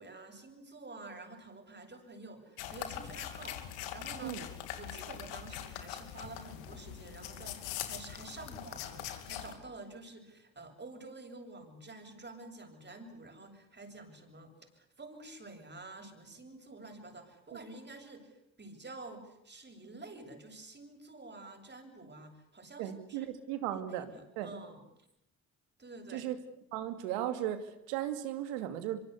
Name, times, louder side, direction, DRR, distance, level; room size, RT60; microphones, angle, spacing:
voice 1, 0.0-4.4 4.8-23.3 23.7-24.8 25.8-26.3, right 2 dB, 30° right, 5 dB, 7.9 m, -49 dB
sound 1, 2.6-9.5, left 11 dB, 85° left, 2.8 m, -42 dB
voice 2, 22.8-24.1 24.4-24.5 26.1-26.4 26.7-29.0, right 12 dB, 90° right, 9 dB, 2.7 m, -36 dB
25.0 x 24.5 x 8.3 m, 0.80 s
supercardioid pair, 60°, 37 cm